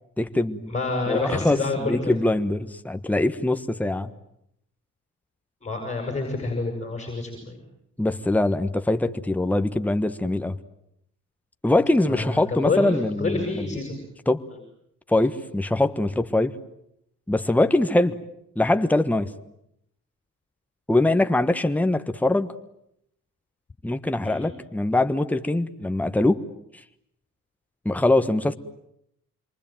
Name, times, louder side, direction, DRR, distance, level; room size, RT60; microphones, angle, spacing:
voice 1, 0.2-0.7 1.1-4.1 8.0-10.6 11.6-13.7 14.3-14.5 15.1-16.6 17.3-18.2 18.5-19.3 20.9-22.5 23.8-26.4 27.8-28.6, left 2 dB, 5° left, 8 dB, 1.4 m, -23 dB
voice 2, 0.7-2.1 5.6-7.6 12.1-12.9 13.2-14.0 24.2-24.4, left 3 dB, 25° left, 3 dB, 7.4 m, -27 dB
27.5 x 23.5 x 9.2 m, 0.77 s
cardioid pair, 90°, 30 cm